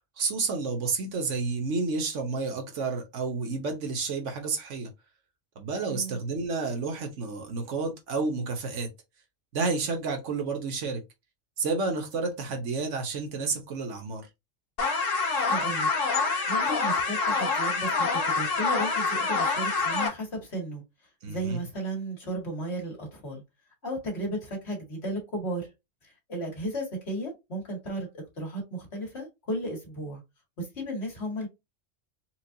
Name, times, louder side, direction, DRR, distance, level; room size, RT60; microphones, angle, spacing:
voice 1, 0.2-4.9 5.6-8.9 9.5-11.0 11.6-14.3 21.2-21.6, right 4 dB, 70° right, 1.3 m, -30 dB
voice 2, 5.9-6.2 15.4-15.9 16.5-20.8 21.3-23.4 23.8-25.7 26.3-30.2 30.6-31.5, right 1 dB, 55° left, 1.9 m, -34 dB
sound 1, 14.8-20.1, left 4 dB, 75° left, 1.5 m, -26 dB
4.4 x 2.4 x 2.7 m
omnidirectional pair, 1.3 m